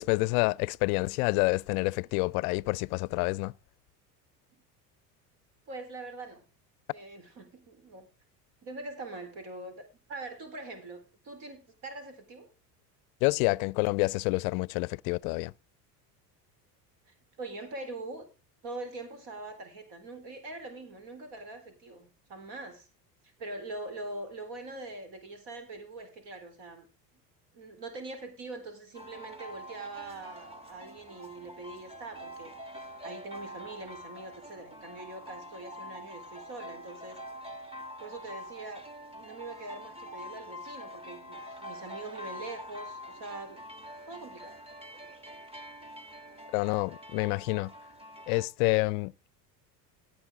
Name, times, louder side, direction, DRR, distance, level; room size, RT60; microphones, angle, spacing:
voice 1, 0.0-3.5 13.2-15.5 46.5-47.7 48.3-49.1, left 26 dB, 65° left, 0.5 m, -28 dB
voice 2, 5.7-6.4 6.9-8.1 8.6-12.5 17.1-18.3 18.6-22.9 23.2-26.9 27.5-37.2 38.0-38.8 39.1-43.6 44.1-44.6, right 2 dB, 55° right, 4.1 m, -43 dB
sound 1, 28.9-48.5, equal, 10° right, 1.5 m, -45 dB
17.0 x 8.8 x 3.7 m
hypercardioid pair, 80°, 48 cm